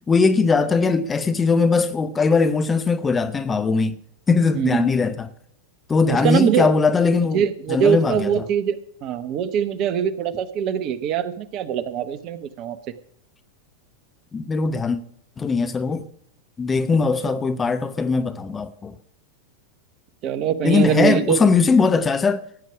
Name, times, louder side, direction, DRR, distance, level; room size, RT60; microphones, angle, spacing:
voice 1, 0.1-4.0 4.3-5.3 5.9-7.4 7.7-8.3 14.3-15.0 15.4-16.1 16.6-18.9 20.6-22.4, left 4 dB, 15° left, 0.9 m, -20 dB
voice 2, 4.5-4.9 6.1-6.7 7.3-12.8 17.3-17.4 20.2-21.4, right 8 dB, 40° right, 1.1 m, -23 dB
16.5 x 9.4 x 4.9 m
figure-of-eight pair, 90°, 0 cm